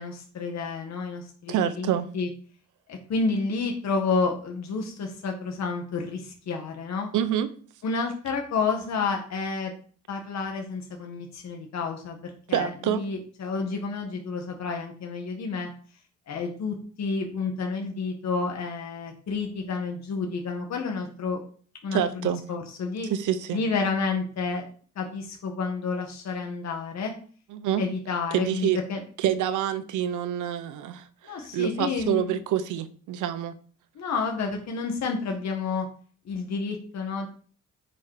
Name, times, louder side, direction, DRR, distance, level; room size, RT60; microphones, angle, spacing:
voice 1, 0.0-2.3 2.9-7.1 7.8-9.7 10.1-15.7 16.3-21.4 21.8-23.1 23.5-24.6 25.0-27.1 27.8-29.0 31.2-32.3 34.0-35.9 36.3-37.3, left 4 dB, 60° left, 2 dB, 1.8 m, -30 dB
voice 2, 1.5-2.1 7.1-7.5 12.5-13.0 21.9-22.4 23.1-23.6 27.5-27.8 28.3-28.8 29.2-33.5, right 10 dB, 85° right, 11 dB, 1.0 m, -27 dB
9.8 x 5.6 x 5.0 m, 0.44 s
cardioid pair, 90°, 30 cm